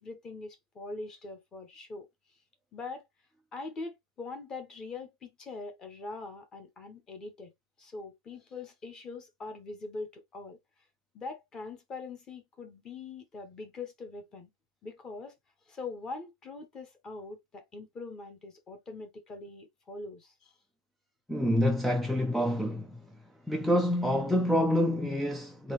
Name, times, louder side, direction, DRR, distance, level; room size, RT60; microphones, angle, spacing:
voice 1, 0.0-2.1 2.7-3.1 3.5-7.5 7.8-10.6 11.1-14.5 14.8-15.3 15.7-20.6, left 3 dB, 15° left, 1.0 m, -42 dB
voice 2, 21.3-23.0 23.5-25.7, equal, ahead, 0.3 m, -27 dB
3.9 x 3.5 x 3.2 m
supercardioid pair, 165°, 4 cm